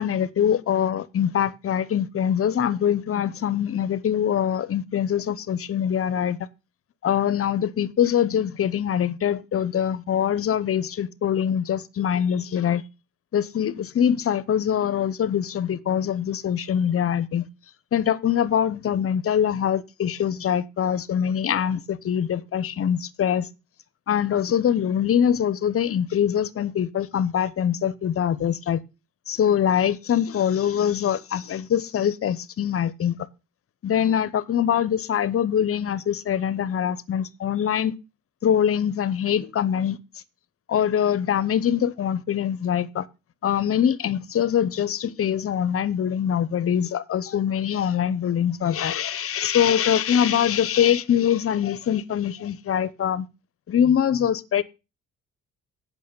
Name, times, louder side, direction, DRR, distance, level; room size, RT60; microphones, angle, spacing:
voice 1, 0.0-6.4 7.0-12.8 13.3-17.5 17.9-23.5 24.1-28.8 29.3-33.2 33.8-37.9 38.4-40.0 40.7-43.1 43.4-53.3 53.7-54.6, left 9 dB, 50° left, 0.8 m, -23 dB
8.3 x 6.0 x 6.6 m
cardioid pair, 90°, 30 cm